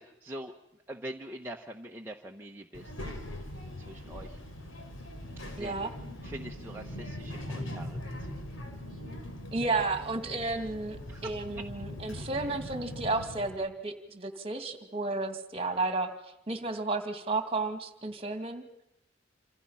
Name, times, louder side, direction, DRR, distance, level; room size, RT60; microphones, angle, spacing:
voice 1, 0.0-3.2 3.8-4.4 5.4-5.9 6.2-8.3 11.1-11.6 12.1-12.6, right 1 dB, 10° right, 0 dB, 1.1 m, -44 dB
Child speech kid speaking, 2.7-13.5, left 1 dB, 90° left, 4.4 m, -41 dB
voice 2, 5.6-5.9 9.5-18.6, right 3 dB, 30° right, 7 dB, 2.3 m, -32 dB
27.5 x 27.0 x 5.7 m, 0.81 s
head